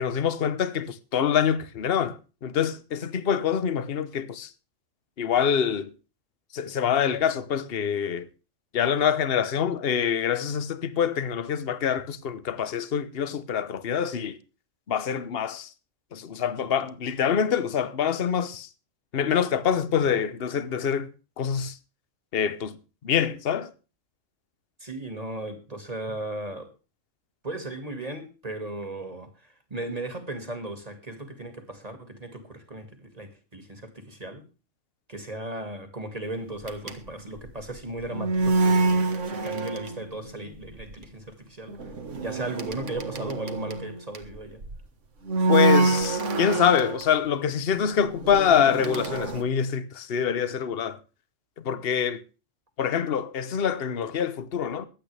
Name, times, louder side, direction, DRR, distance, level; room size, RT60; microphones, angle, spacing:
voice 1, 0.0-4.5 5.2-5.9 6.5-8.3 8.7-14.4 14.9-15.7 16.1-18.7 19.1-21.1 21.4-21.8 22.3-22.8 23.0-23.7 45.5-51.0 51.6-52.2 52.8-54.9, left 8 dB, 50° left, 1.1 m, -25 dB
voice 2, 24.8-26.7 27.4-29.3 29.7-34.4 35.1-41.8 42.2-44.6, right 2 dB, 30° right, 2.3 m, -36 dB
sound 1, 36.6-40.3 40.5-40.9 41.7-44.8 45.3-47.1 47.8-49.4, right 3 dB, 65° right, 1.8 m, -26 dB
22.5 x 8.8 x 3.4 m
omnidirectional pair, 1.3 m